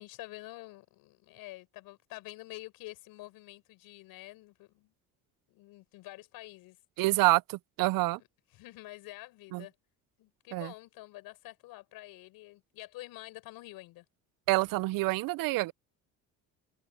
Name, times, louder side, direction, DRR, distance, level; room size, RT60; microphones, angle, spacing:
voice 1, 0.0-4.9 5.5-6.8 8.1-8.3 8.5-9.7 10.2-14.0, left 18 dB, 80° left, 6.3 m, -48 dB
voice 2, 7.0-8.2 9.5-9.6 10.5-10.7 14.5-15.7, right 20 dB, 70° right, 0.6 m, -27 dB
cardioid pair, 105°, 35 cm